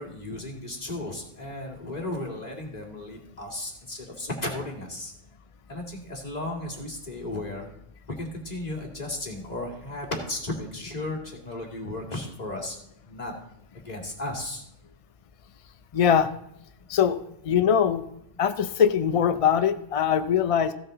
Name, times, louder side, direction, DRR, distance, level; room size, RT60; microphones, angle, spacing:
voice 1, 0.0-5.1 5.7-7.7 8.2-12.8 13.1-13.3 13.7-14.6, left 2 dB, 35° left, -1 dB, 2.6 m, -35 dB
voice 2, 15.9-16.3 16.9-18.1 18.4-20.7, left 8 dB, 60° left, 10 dB, 0.3 m, -22 dB
15.5 x 7.9 x 4.0 m, 0.79 s
omnidirectional pair, 1.3 m